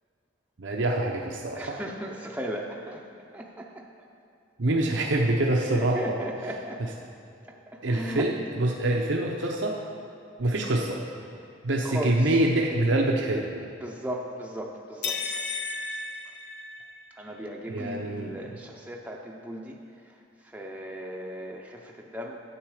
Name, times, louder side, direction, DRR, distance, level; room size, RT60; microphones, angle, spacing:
voice 1, 0.6-1.6 4.6-6.2 7.8-9.8 10.4-11.0 11.6-13.4 17.7-18.3, right 1 dB, 70° right, 0 dB, 0.7 m, -25 dB
voice 2, 1.5-3.1 3.3-3.9 5.7-7.0 7.5-8.3 11.8-12.4 13.8-15.5 16.2-16.4 17.1-22.4, equal, 10° right, -1 dB, 0.6 m, -37 dB
sound 1, 15.0-17.2, left 4 dB, 60° left, 0.8 m, -33 dB
10.5 x 7.8 x 4.9 m, 2.6 s
head